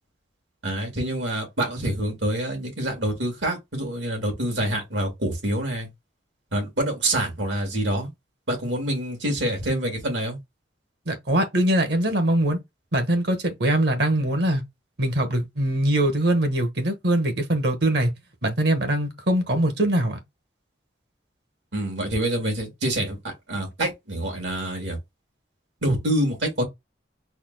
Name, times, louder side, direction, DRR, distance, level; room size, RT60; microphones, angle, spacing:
voice 1, 0.6-5.9 6.5-8.1 8.5-10.4 21.7-25.0 25.8-26.6, right 1 dB, 80° right, 2.2 m, -26 dB
voice 2, 11.1-12.6 12.9-14.6 15.0-18.1 18.4-20.2, right 1 dB, 60° right, 1.2 m, -22 dB
4.2 x 2.2 x 4.0 m
head